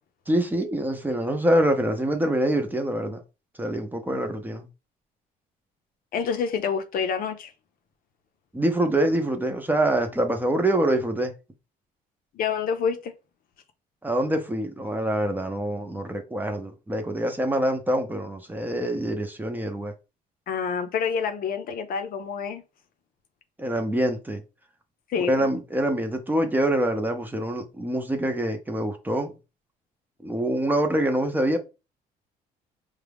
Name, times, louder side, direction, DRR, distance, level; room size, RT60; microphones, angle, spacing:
voice 1, 0.3-3.2 3.6-4.7 8.5-11.3 14.0-19.9 23.6-24.4 25.3-29.3 30.2-31.6, right 1 dB, 10° right, 0.7 m, -25 dB
voice 2, 6.1-7.5 12.3-13.1 20.5-22.6 25.1-25.5, left 6 dB, 60° left, 0.7 m, -27 dB
4.9 x 2.3 x 3.4 m
cardioid pair, 110°, 17 cm